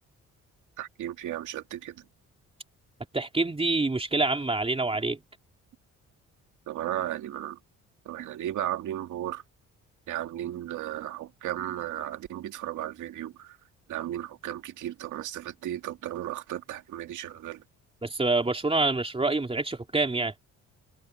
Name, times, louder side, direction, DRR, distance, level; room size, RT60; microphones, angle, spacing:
voice 1, 0.8-2.0 6.7-7.6 8.1-9.4 10.1-13.6 13.9-17.6, right 12 dB, 80° right, 2.1 m, -35 dB
voice 2, 3.1-5.2 18.0-20.3, right 3 dB, 20° right, 3.5 m, -26 dB
open air
cardioid pair, 90°, 30 cm